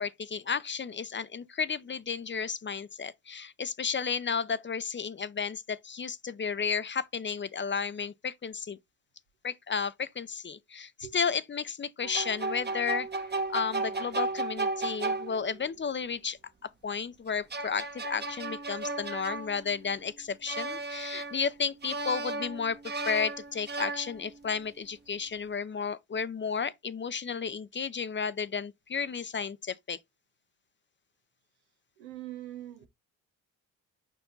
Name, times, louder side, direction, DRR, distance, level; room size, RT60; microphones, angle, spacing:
voice 1, 0.0-8.8 9.4-13.1 13.5-16.4 16.8-22.8 23.1-30.0, left 6 dB, 30° left, 0.7 m, -33 dB
sound 1, 12.0-15.7 17.3-20.0 20.5-21.5 21.8-24.5, right 3 dB, 25° right, 1.1 m, -35 dB
voice 2, 32.0-32.9, right 13 dB, 90° right, 1.1 m, -42 dB
5.3 x 4.7 x 3.9 m
hypercardioid pair, 50°, 37 cm